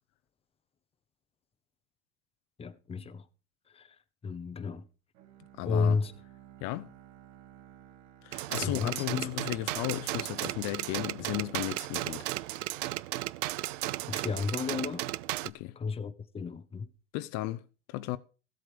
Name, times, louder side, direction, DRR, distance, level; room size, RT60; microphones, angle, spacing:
voice 1, 2.6-3.2 3.7-4.0 4.2-4.8 5.7-6.1 8.6-9.3 14.1-15.1 15.8-16.9, left 5 dB, 15° left, 1.0 m, -32 dB
Bowed string instrument, 5.1-10.1, right 11 dB, 65° right, 2.3 m, -56 dB
voice 2, 5.6-6.0 6.6-6.9 8.2-12.3 15.4-15.8 17.1-17.6 17.9-18.2, left 17 dB, 55° left, 0.8 m, -35 dB
sound 1, 8.3-15.5, right 17 dB, 85° right, 0.7 m, -35 dB
15.5 x 8.0 x 5.0 m
supercardioid pair, 130°, 36 cm